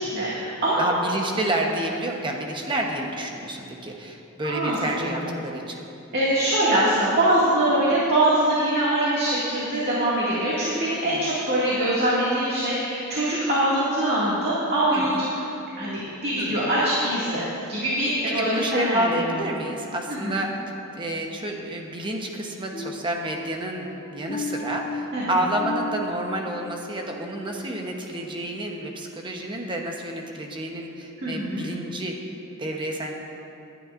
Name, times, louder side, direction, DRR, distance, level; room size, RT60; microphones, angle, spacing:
voice 1, 0.0-0.8 4.4-5.3 6.1-15.3 15.8-19.4 20.1-20.5 25.1-25.3 31.2-31.6, right 1 dB, 45° right, -8 dB, 2.1 m, -23 dB
voice 2, 0.8-5.8 11.0-11.3 14.9-15.3 16.4-16.7 18.4-20.5 20.9-32.2 32.6-33.1, right 1 dB, 20° right, 1 dB, 1.0 m, -29 dB
sound 1, 22.7-28.4 28.8-29.1 29.6-29.8, left 2 dB, 30° left, 1.0 m, -37 dB
20.0 x 11.0 x 2.6 m, 2.7 s
head